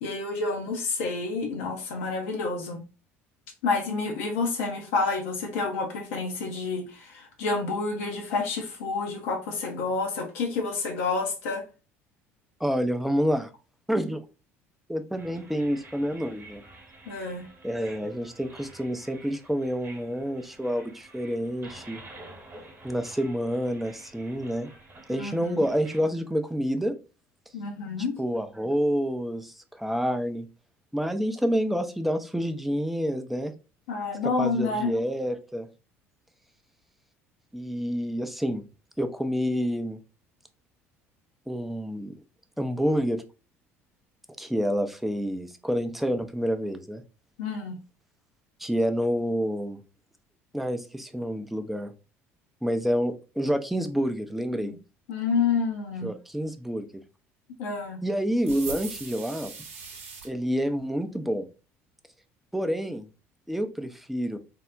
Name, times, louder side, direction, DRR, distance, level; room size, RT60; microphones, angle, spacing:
voice 1, 0.0-2.8 3.6-11.6 17.1-17.5 25.2-25.6 27.5-28.2 33.9-34.9 47.4-47.8 54.6-54.8 55.1-56.1 57.6-58.0, left 4 dB, 65° left, 0.5 m, -29 dB
voice 2, 12.6-13.5 13.9-14.2 14.9-16.6 17.6-22.0 22.8-24.7 25.1-26.9 28.2-30.5 30.9-33.5 34.2-35.7 37.5-38.6 39.0-40.0 41.5-42.2 42.6-43.2 44.4-47.0 48.6-49.8 50.5-51.9 52.6-54.7 56.0-56.9 58.0-59.5 60.2-61.5 62.5-63.1 63.5-64.4, equal, ahead, 0.4 m, -28 dB
sound 1, 15.2-26.0, right 2 dB, 30° right, 1.1 m, -49 dB
sound 2, 58.4-60.3, right 5 dB, 70° right, 0.7 m, -39 dB
3.5 x 2.0 x 2.3 m
figure-of-eight pair, 60°, 7 cm